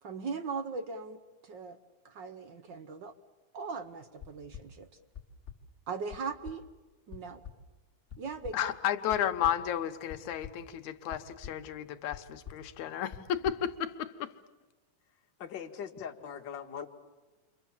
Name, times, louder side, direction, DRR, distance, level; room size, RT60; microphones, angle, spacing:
voice 1, 0.0-1.8 2.0-3.1 3.5-4.9 5.9-6.6 7.1-7.4 8.2-8.7, right 4 dB, 60° right, 9 dB, 1.1 m, -39 dB
sound 1, 4.2-4.6 5.1-5.6 6.1-6.2 6.4-6.5 7.1-7.2 7.4-7.5 8.1-8.5 9.1-9.5 10.1-10.6 11.1-11.5 12.1-12.2 12.5-12.6 13.1-13.5, left 9 dB, 25° left, 2.1 m, -43 dB
voice 2, 8.5-14.3, left 10 dB, 75° left, 8 dB, 2.4 m, -33 dB
voice 3, 15.4-16.9, left 8 dB, 45° left, 1 dB, 2.0 m, -40 dB
29.0 x 25.0 x 7.3 m, 1.2 s
omnidirectional pair, 3.5 m